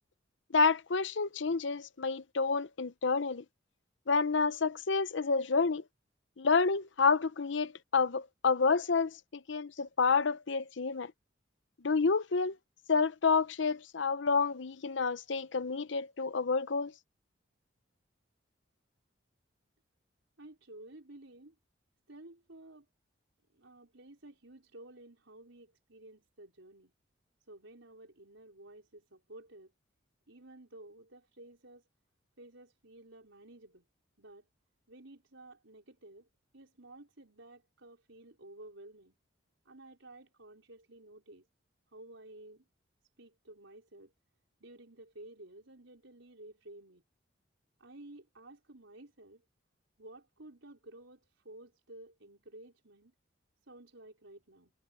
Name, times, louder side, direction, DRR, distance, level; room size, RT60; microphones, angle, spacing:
voice 1, 0.5-3.4 4.1-5.8 6.4-11.1 11.8-12.6 12.9-16.9, left 4 dB, 70° left, 0.7 m, -29 dB
voice 2, 20.4-21.6 22.1-22.9 23.5-26.9 27.5-29.7 30.3-31.9 32.4-33.9 34.2-34.5 34.9-36.3 36.5-39.2 39.6-41.5 41.9-42.7 43.2-44.1 44.6-47.0 47.8-49.4 50.0-53.1 53.7-54.7, right 1 dB, 85° right, 4.9 m, -53 dB
head